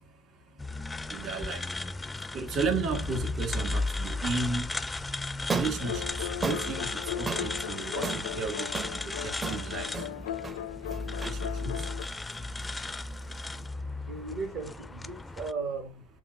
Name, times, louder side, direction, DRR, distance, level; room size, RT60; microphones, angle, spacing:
sound 1, 0.6-15.5, left 2 dB, 10° left, 0.4 m, -35 dB
voice 1, 1.1-1.6 2.3-4.7 5.5-6.0 6.4-8.9 9.2-9.9 11.2-11.8, right 4 dB, 45° right, 2.2 m, -33 dB
sound 2, 5.4-13.6, right 5 dB, 25° right, 0.7 m, -38 dB
sound 3, 5.8-12.0, left 12 dB, 80° left, 0.4 m, -38 dB
voice 2, 14.0-16.1, right 4 dB, 65° right, 1.5 m, -36 dB
7.0 x 2.6 x 2.7 m
hypercardioid pair, 90°, 0 cm